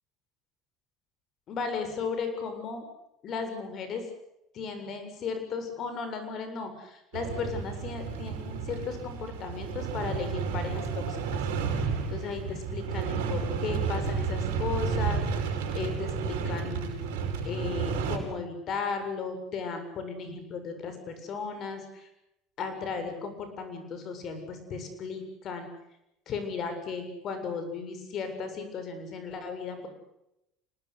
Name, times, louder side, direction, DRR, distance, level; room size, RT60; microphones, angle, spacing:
voice 1, 1.5-2.8 3.2-4.1 4.5-11.4 12.1-17.1 17.4-22.1 22.6-25.7 26.3-29.9, left 5 dB, 50° left, 8 dB, 7.3 m, -35 dB
sound 1, 7.1-18.2, right 5 dB, 85° right, 5.3 m, -31 dB
26.5 x 20.0 x 8.3 m, 0.84 s
supercardioid pair, 90°, 0 cm